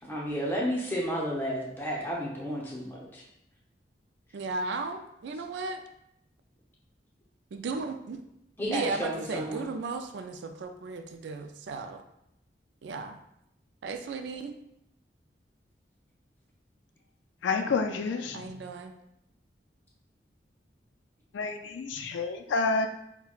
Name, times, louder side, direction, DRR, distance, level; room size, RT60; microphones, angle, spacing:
voice 1, 0.1-3.2 8.6-9.7, equal, 10° left, -3 dB, 0.7 m, -32 dB
voice 2, 4.3-5.8 7.5-8.2 8.6-12.0 12.8-13.2 13.8-14.6 18.3-18.9, right 4 dB, 80° right, 7 dB, 0.4 m, -35 dB
voice 3, 17.4-18.6 21.3-22.9, left 4 dB, 90° left, 6 dB, 0.4 m, -29 dB
5.7 x 2.2 x 2.3 m, 0.78 s
head